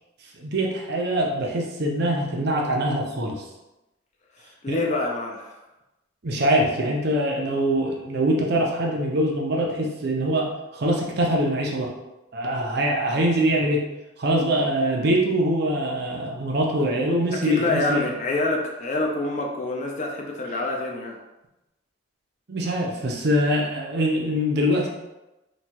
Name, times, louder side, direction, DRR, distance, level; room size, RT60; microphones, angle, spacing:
voice 1, 0.4-3.4 4.7-4.8 6.2-11.9 12.3-13.8 14.2-18.0 22.5-24.9, equal, 55° right, -1 dB, 0.5 m, -23 dB
voice 2, 4.6-5.6 17.4-21.2, left 2 dB, 35° left, 0 dB, 0.4 m, -26 dB
3.0 x 2.2 x 4.2 m, 0.98 s
head